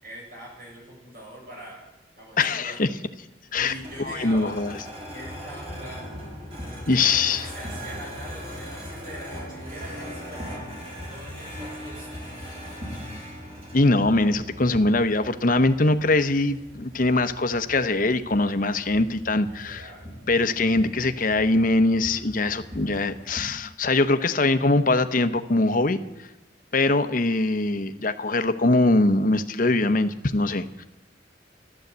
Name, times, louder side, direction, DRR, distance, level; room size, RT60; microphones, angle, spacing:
voice 1, 0.0-1.8 2.2-2.8 3.6-4.6 5.1-6.2 7.3-10.7 11.1-13.2 19.5-20.1, right 1 dB, 50° right, -2 dB, 6.8 m, -43 dB
voice 2, 2.4-2.9 3.5-3.7 4.0-4.7 6.9-7.5 13.7-19.9 20.3-26.0 26.7-30.8, left 2 dB, 50° left, 10 dB, 0.9 m, -22 dB
sound 1, 3.5-23.4, equal, 35° right, 4.3 m, -40 dB
14.5 x 12.5 x 8.1 m, 0.99 s
head